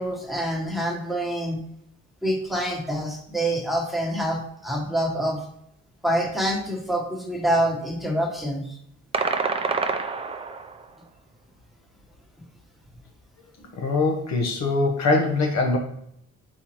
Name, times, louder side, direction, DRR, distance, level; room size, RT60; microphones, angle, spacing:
voice 1, 0.0-1.6 2.2-5.4 6.0-8.8, right 1 dB, ahead, -2 dB, 1.1 m, -26 dB
sound 1, 9.1-10.9, right 4 dB, 20° right, 0.3 m, -27 dB
voice 2, 13.8-15.8, left 3 dB, 60° left, 2 dB, 0.8 m, -22 dB
4.3 x 3.6 x 2.9 m, 0.73 s
cardioid pair, 90°, 30 cm